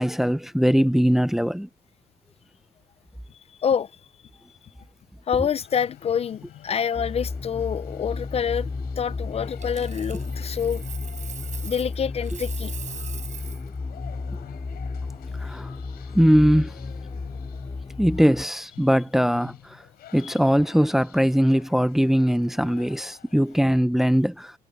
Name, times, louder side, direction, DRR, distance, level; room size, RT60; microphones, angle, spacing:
voice 1, 0.0-1.7 15.4-15.7 16.1-16.7 18.0-19.8 20.1-24.5, equal, ahead, 0.6 m, -21 dB
voice 2, 5.3-8.7 9.0-10.8 11.6-12.7 20.2-20.3, left 7 dB, 40° left, 0.5 m, -26 dB
sound 1, 5.6-23.8, left 12 dB, 85° left, 5.7 m, -49 dB
sound 2, 6.9-18.5, left 4 dB, 25° left, 2.3 m, -33 dB
Coin (dropping), 9.6-12.0 12.2-13.7 16.5-16.7, right 8 dB, 50° right, 5.8 m, -41 dB
cardioid pair, 130°, 16 cm